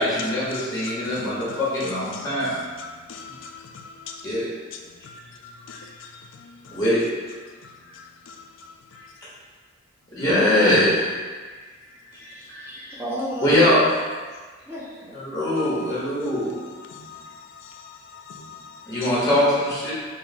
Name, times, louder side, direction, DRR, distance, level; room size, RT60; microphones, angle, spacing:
voice 1, 0.0-2.6 4.2-4.5 6.7-7.1 9.2-9.3 10.1-11.2 12.1-12.7 13.4-13.8 15.1-16.6 18.8-19.9, left 1 dB, 20° left, 1.1 m, -22 dB
voice 2, 0.5-4.2 5.0-6.8 7.6-8.7 15.6-15.8 16.9-18.9, left 5 dB, 70° left, 0.3 m, -41 dB
voice 3, 12.1-13.8 14.6-15.2, equal, 10° right, 1.2 m, -34 dB
4.1 x 2.1 x 4.1 m
head